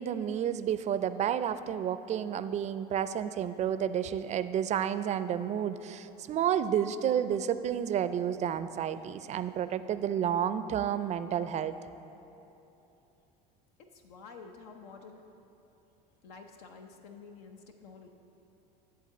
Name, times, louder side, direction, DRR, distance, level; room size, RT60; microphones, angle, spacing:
voice 1, 0.0-11.7, right 9 dB, 35° right, 12 dB, 0.4 m, -30 dB
voice 2, 13.8-15.2 16.2-18.1, left 4 dB, 85° left, 4 dB, 0.7 m, -50 dB
11.0 x 3.7 x 7.6 m, 3.0 s
supercardioid pair, 95°, 20 cm